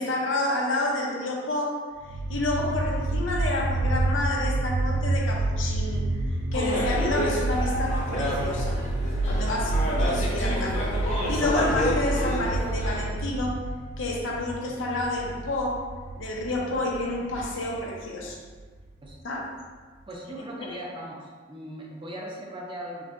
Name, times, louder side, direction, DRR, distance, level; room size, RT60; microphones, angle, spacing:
voice 1, 0.0-1.8 2.3-6.1 6.5-8.8 9.2-13.6 14.0-15.9 16.2-18.4 19.2-19.5, left 2 dB, 80° left, -2 dB, 0.7 m, -29 dB
sound 1, 2.0-19.1, right 2 dB, 85° right, 0.4 m, -29 dB
sound 2, 6.5-13.0, left 1 dB, 40° left, 0.8 m, -30 dB
voice 2, 20.1-23.1, right 1 dB, 25° right, -2 dB, 0.6 m, -38 dB
4.8 x 2.2 x 3.7 m, 1.5 s
head